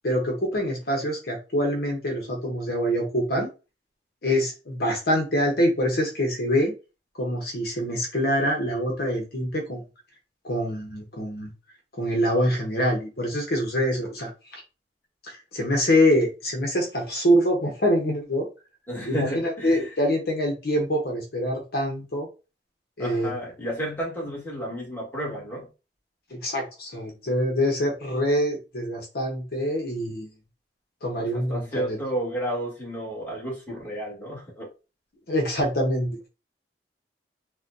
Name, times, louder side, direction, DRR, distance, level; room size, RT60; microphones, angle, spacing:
voice 1, 0.0-3.5 4.2-6.7 7.1-9.8 10.4-11.5 12.0-14.6 15.2-18.5 19.0-22.3 23.0-23.3 26.3-30.3 31.0-32.0 35.3-36.2, equal, 60° left, 0.9 m, -25 dB
voice 2, 18.9-19.8 23.0-25.7 31.2-34.7, equal, 10° left, 1.5 m, -32 dB
4.1 x 2.2 x 2.5 m
head